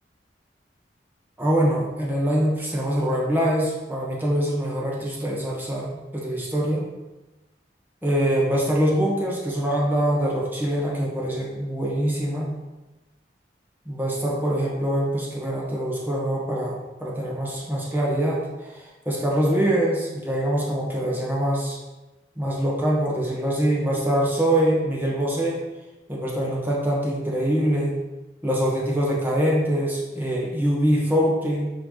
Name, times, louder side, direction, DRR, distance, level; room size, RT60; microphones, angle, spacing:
voice 1, 1.4-6.8 8.0-12.5 13.8-21.8 22.4-25.6 26.1-28.0 28.4-31.7, right 1 dB, 10° right, -4 dB, 1.5 m, -24 dB
8.0 x 4.9 x 4.0 m, 1.1 s
head